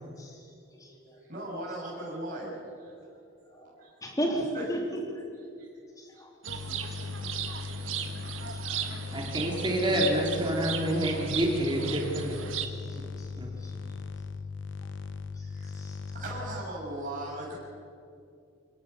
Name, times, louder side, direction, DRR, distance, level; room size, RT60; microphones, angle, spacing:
voice 1, 0.7-1.2 3.5-3.7 4.0-5.2 6.0-6.3 6.9-7.7 8.5-8.6 9.4-9.6 12.5-12.6 12.9-13.3 13.6-13.7 15.4-15.5 15.7-16.0, equal, 20° left, 0 dB, 3.4 m, -36 dB
voice 2, 1.3-2.5 2.8-2.9 3.8-3.9 4.5-4.7 5.6-5.7 6.1-6.2 7.1-7.7 15.4-15.7 16.1-17.5, right 1 dB, 45° right, -5 dB, 7.4 m, -38 dB
sound 1, 6.4-12.7, right 9 dB, 90° right, 1.6 m, -36 dB
sound 2, 6.5-16.6, left 4 dB, 70° left, 0.9 m, -39 dB
voice 3, 9.1-12.4 12.9-13.0 13.4-13.5, equal, 25° right, -1 dB, 3.4 m, -28 dB
26.5 x 17.5 x 7.1 m, 2.4 s
head